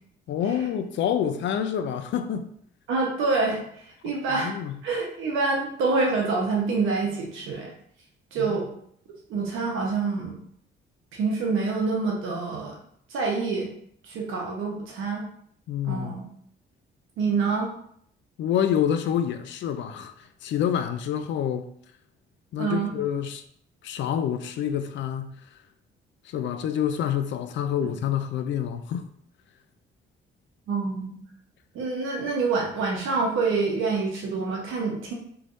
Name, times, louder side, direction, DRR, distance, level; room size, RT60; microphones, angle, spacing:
voice 1, 0.3-2.5 4.3-4.8 8.4-8.6 15.7-16.2 18.4-20.1 20.4-21.6 22.5-23.4 23.8-25.3 26.3-29.1, left 9 dB, 70° left, 0.4 m, -27 dB
voice 2, 2.9-4.5 4.8-7.7 8.3-8.7 9.3-10.4 11.1-12.8 13.1-13.7 14.1-15.2 15.8-16.2 17.2-17.7 22.6-22.9 30.7-31.1 31.7-35.1, right 4 dB, 85° right, 1.0 m, -26 dB
3.4 x 3.2 x 2.6 m
cardioid pair, 90°, 20 cm